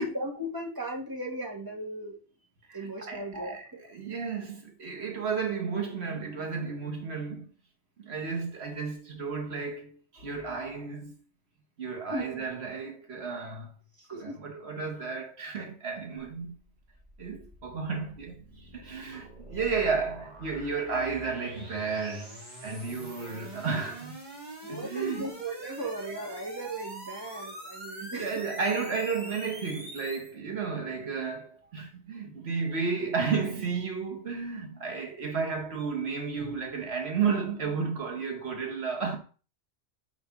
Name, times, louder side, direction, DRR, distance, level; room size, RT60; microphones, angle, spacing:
voice 1, 0.0-2.2 2.7-3.9 12.1-12.5 14.0-14.4 24.6-28.3, right 1 dB, 20° right, 1.8 m, -36 dB
voice 2, 2.7-3.6 3.9-7.5 8.0-11.1 11.8-13.7 14.1-16.5 17.2-24.2 24.7-25.3 28.0-39.2, right 5 dB, 60° right, 1.6 m, -33 dB
sound 1, 16.3-30.3, right 1 dB, 35° right, 2.0 m, -45 dB
5.2 x 4.8 x 5.8 m
omnidirectional pair, 1.2 m